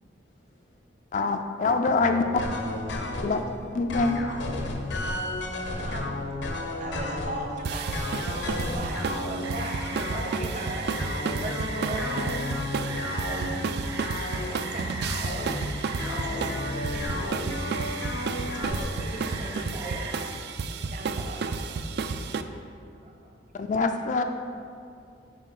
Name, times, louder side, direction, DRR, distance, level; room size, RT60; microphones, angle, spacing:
voice 1, 0.2-0.8 8.5-8.6 9.3-9.4 14.6-14.9 16.4-16.5, left 2 dB, 90° left, -3 dB, 1.4 m, -57 dB
voice 2, 1.1-2.4 3.2-3.4 3.7-4.2 23.5-24.2, left 3 dB, 40° left, 6 dB, 0.3 m, -24 dB
sound 1, 2.0-3.5 3.9-7.5 7.9-18.8, left 1 dB, 70° left, 0.7 m, -33 dB
voice 3, 5.7-12.2 13.0-13.7 14.2-15.6 16.0-17.4 18.4-20.3 20.9-23.3, right 2 dB, 40° right, 1 dB, 0.8 m, -39 dB
sound 2, 7.6-22.4, right 4 dB, 60° right, 0.3 m, -32 dB
Rain, 9.4-20.1, right 2 dB, 85° right, 1.4 m, -39 dB
10.0 x 4.5 x 3.8 m, 2.4 s
head